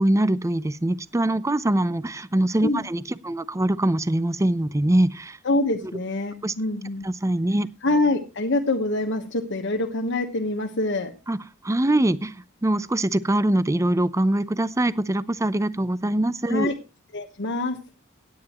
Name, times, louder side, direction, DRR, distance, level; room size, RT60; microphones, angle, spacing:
voice 1, 0.0-5.4 6.4-6.5 7.0-7.7 11.3-11.4 11.6-12.4 12.6-16.7, right 1 dB, 15° right, 16 dB, 0.6 m, -23 dB
voice 2, 5.4-7.0 7.8-11.1 16.5-16.7 17.1-17.8, left 2 dB, 60° left, 5 dB, 1.2 m, -25 dB
17.0 x 9.8 x 3.0 m, 0.29 s
head